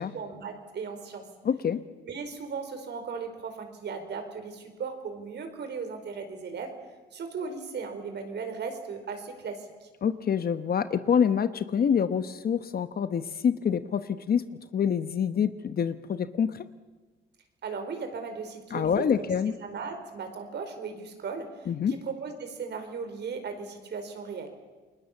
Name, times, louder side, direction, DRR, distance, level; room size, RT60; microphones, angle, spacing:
voice 1, 0.0-1.3 2.1-6.7 7.1-9.9 17.6-19.3 19.6-24.5, right 5 dB, 60° right, 6 dB, 4.5 m, -37 dB
voice 2, 1.4-1.8 10.0-14.5 14.7-16.7 18.7-19.5 21.7-21.9, left 7 dB, 50° left, 12 dB, 1.1 m, -26 dB
29.0 x 20.5 x 7.2 m, 1.3 s
cardioid pair, 90°, 20 cm